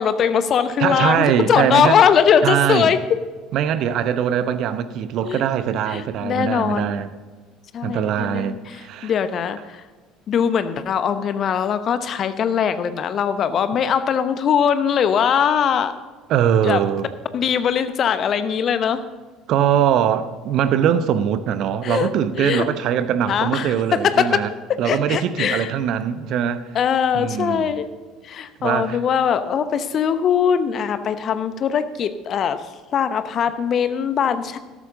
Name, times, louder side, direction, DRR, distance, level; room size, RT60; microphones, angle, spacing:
voice 1, 0.0-3.0 5.2-5.4 5.9-7.0 7.7-9.8 10.3-15.9 16.6-16.8 17.3-19.0 21.8-22.1 22.4-22.6 23.3-24.4 24.8-25.7 26.7-27.9 28.2-32.7 32.9-34.6, left 7 dB, 45° left, 12 dB, 0.9 m, -21 dB
voice 2, 0.8-2.0 2.4-2.9 3.5-7.1 7.8-9.1 16.3-17.1 19.5-24.5 24.8-26.7 27.1-27.7 28.6-29.0, right 9 dB, 55° right, 12 dB, 0.8 m, -21 dB
13.5 x 12.5 x 3.8 m, 1.4 s
figure-of-eight pair, 60°, 0 cm